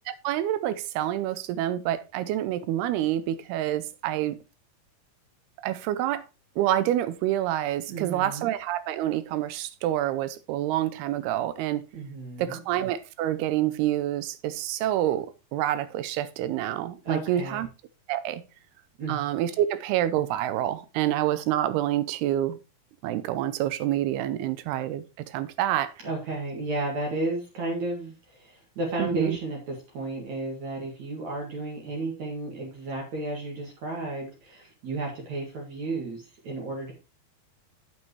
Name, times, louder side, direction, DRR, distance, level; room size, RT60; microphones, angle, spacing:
voice 1, 0.1-4.4 5.6-6.2 6.6-11.8 12.4-17.7 18.1-18.4 19.1-22.6 23.0-25.9 29.0-29.4, right 12 dB, 85° right, 2.6 m, -27 dB
voice 2, 7.9-8.5 11.9-12.6 17.0-17.7 19.0-19.2 26.0-36.9, right 2 dB, 50° right, 2.8 m, -33 dB
8.5 x 8.3 x 3.1 m
omnidirectional pair, 4.6 m